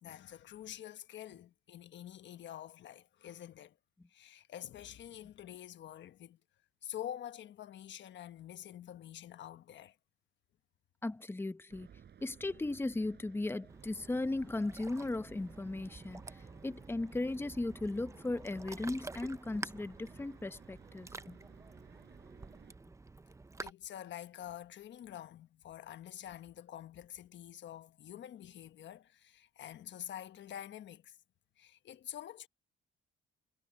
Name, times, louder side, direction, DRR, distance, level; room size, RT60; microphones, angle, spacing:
voice 1, 0.0-3.8 4.1-6.4 6.8-10.0 23.6-31.2 31.6-32.5, left 11 dB, 65° left, 1.2 m, -47 dB
voice 2, 11.0-11.9 12.2-21.4, left 2 dB, 10° left, 0.9 m, -37 dB
sound 1, 11.7-22.8, right 8 dB, 55° right, 7.5 m, -59 dB
Ocean, 13.7-23.7, right 3 dB, 15° right, 0.7 m, -49 dB
cardioid pair, 90°, 20 cm